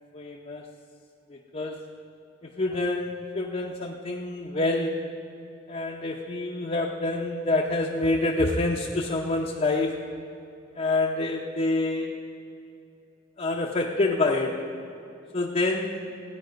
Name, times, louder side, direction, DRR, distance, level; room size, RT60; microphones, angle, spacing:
voice 1, 0.1-0.6 1.3-1.9 2.4-5.2 5.7-10.1 10.7-12.1 13.4-14.7 15.3-16.1, left 2 dB, 35° left, -1 dB, 0.7 m, -27 dB
16.5 x 9.6 x 5.1 m, 2.6 s
head